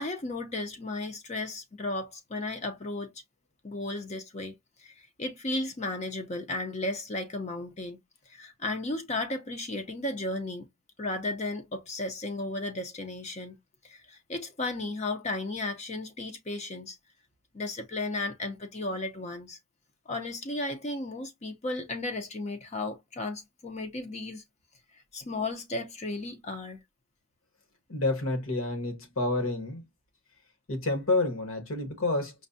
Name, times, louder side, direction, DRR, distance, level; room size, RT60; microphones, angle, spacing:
voice 1, 0.0-3.2 3.6-8.0 8.3-10.7 11.0-13.6 13.8-17.0 17.5-19.6 20.1-24.4 24.9-26.8, left 2 dB, 30° left, 0.5 m, -34 dB
voice 2, 27.9-29.8 30.7-32.3, left 2 dB, 65° left, 1.2 m, -29 dB
5.1 x 2.1 x 2.6 m
head